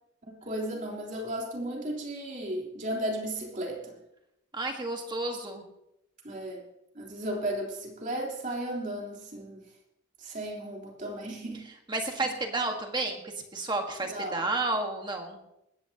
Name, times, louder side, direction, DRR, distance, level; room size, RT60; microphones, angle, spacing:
voice 1, 0.3-4.0 6.2-6.6 6.9-9.6 10.2-11.7 14.0-14.4, right 1 dB, 40° right, -1 dB, 3.5 m, -35 dB
voice 2, 4.5-5.6 11.9-15.4, right 2 dB, 25° right, 3 dB, 1.5 m, -31 dB
20.0 x 15.5 x 2.9 m, 0.84 s
head